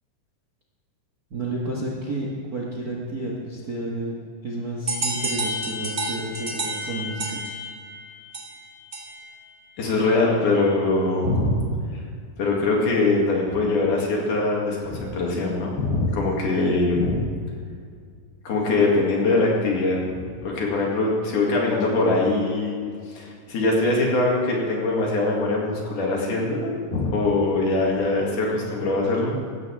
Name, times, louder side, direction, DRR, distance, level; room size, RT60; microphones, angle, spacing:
voice 1, 1.3-4.1 4.4-7.4, right 1 dB, 45° right, -3 dB, 1.3 m, -31 dB
sound 1, 4.9-9.4, right 1 dB, 25° right, 1.5 m, -30 dB
voice 2, 9.8-11.6 12.4-17.3 18.5-20.0 20.4-22.8 23.2-29.4, left 2 dB, 70° left, -2 dB, 3.8 m, -22 dB
16.5 x 14.0 x 3.5 m, 2.2 s
omnidirectional pair, 3.9 m